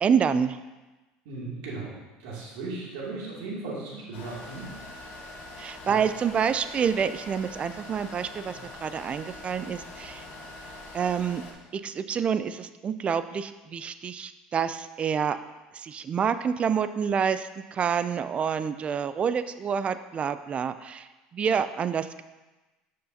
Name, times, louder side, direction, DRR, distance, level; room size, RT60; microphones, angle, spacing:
voice 1, 0.0-0.6 5.6-10.3 10.9-11.4 11.7-15.4 15.7-21.1 21.3-22.2, right 7 dB, 35° right, 12 dB, 0.3 m, -28 dB
voice 2, 1.2-1.9 2.2-4.8 5.8-6.0, right 3 dB, 80° right, -5 dB, 2.4 m, -36 dB
sound 1, 4.1-11.5, left 2 dB, 60° left, 1.3 m, -43 dB
7.8 x 6.4 x 2.7 m, 1.1 s
supercardioid pair, 100°, 4 cm